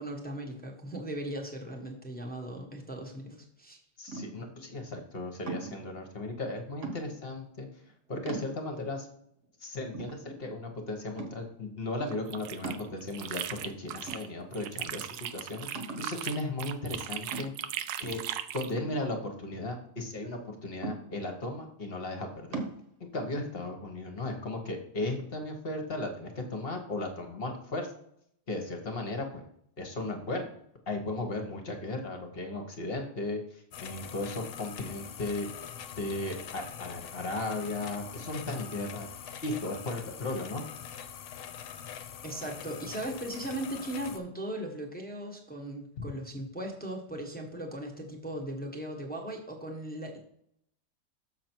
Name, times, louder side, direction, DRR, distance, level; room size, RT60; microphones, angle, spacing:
voice 1, 0.0-3.8 42.2-50.2, right 1 dB, 5° left, 0 dB, 0.9 m, -38 dB
voice 2, 4.0-7.7 8.1-9.1 9.6-15.7 16.0-17.5 18.0-18.2 18.5-22.6 23.1-27.9 28.5-29.4 29.8-30.5 30.9-33.4 33.8-35.5 36.0-39.1 39.4-40.6 46.0-46.1, left 2 dB, 40° left, 4 dB, 1.2 m, -36 dB
sound 1, 4.1-4.5 5.5-5.9 6.8-7.3 7.8-7.9 8.3-8.9 9.4-9.5 9.9-10.7 11.2-11.6 12.6-13.4 14.1-14.7 15.0-15.1 15.7-16.2 17.3-17.8 18.7-19.6 20.8-21.4 22.5-22.8, right 3 dB, 50° right, 1.4 m, -40 dB
sound 2, 12.1-14.3 14.5-18.7, right 11 dB, 75° right, 1.1 m, -38 dB
sound 3, 33.7-44.2, left 9 dB, 65° left, 1.1 m, -43 dB
6.7 x 6.3 x 4.4 m, 0.71 s
omnidirectional pair, 1.8 m